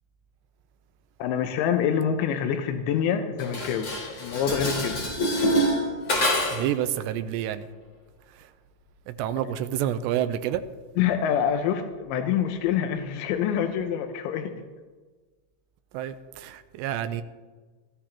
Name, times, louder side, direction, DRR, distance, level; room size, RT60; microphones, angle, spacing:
voice 1, 1.2-3.9 4.2-5.0 11.0-14.5, left 8 dB, 85° left, 6 dB, 3.1 m, -26 dB
Dishes pots and pans, 3.4-6.8, equal, 30° left, 3.3 m, -26 dB
voice 2, 6.5-7.7 9.1-10.6 15.9-17.2, right 11 dB, 85° right, 11 dB, 2.8 m, -28 dB
20.5 x 14.5 x 3.0 m, 1.3 s
omnidirectional pair, 5.1 m